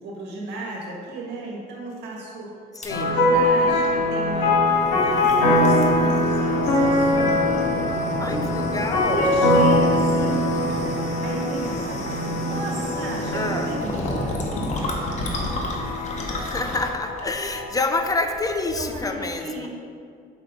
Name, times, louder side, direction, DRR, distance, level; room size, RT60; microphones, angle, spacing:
voice 1, 0.0-2.5 2.9-7.7 8.3-8.6 8.9-10.5 11.2-14.4 14.8-15.3 18.7-19.7, right 2 dB, 80° right, -2 dB, 1.6 m, -34 dB
sound 1, 2.8-19.1, left 1 dB, 45° left, 1.1 m, -32 dB
voice 2, 2.8-3.2 8.2-9.3 13.3-13.7 16.3-19.7, left 3 dB, 20° left, 5 dB, 0.5 m, -28 dB
sunny theme, 2.9-17.9, left 1 dB, 75° left, 1.6 m, -22 dB
5.9 x 4.5 x 5.0 m, 2.3 s
cardioid pair, 110°, 17 cm